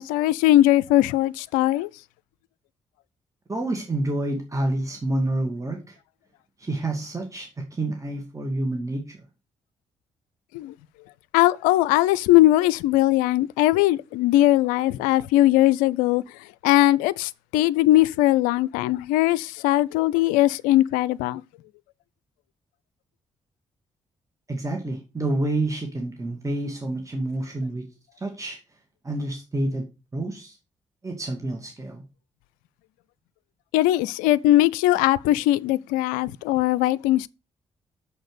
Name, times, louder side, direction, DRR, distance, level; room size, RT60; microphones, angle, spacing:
voice 1, 0.0-1.9 10.5-10.7 11.3-16.2 16.6-21.4 33.7-37.3, left 15 dB, 75° left, 0.4 m, -20 dB
voice 2, 3.5-6.0 6.6-9.2 24.5-27.9 28.2-28.6 29.0-29.9 30.1-30.6 31.0-32.0, right 1 dB, 20° right, 2.5 m, -28 dB
7.0 x 6.5 x 6.6 m
hypercardioid pair, 40°, 14 cm